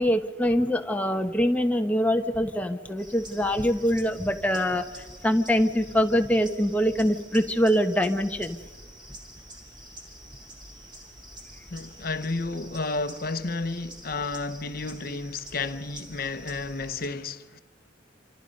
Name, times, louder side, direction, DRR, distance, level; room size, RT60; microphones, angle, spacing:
voice 1, 0.0-8.6, equal, 10° left, 1.2 m, -24 dB
sound 1, 3.0-17.1, right 1 dB, 25° right, 3.2 m, -47 dB
voice 2, 11.7-17.6, left 3 dB, 50° left, 0.9 m, -32 dB
27.5 x 27.5 x 5.4 m
head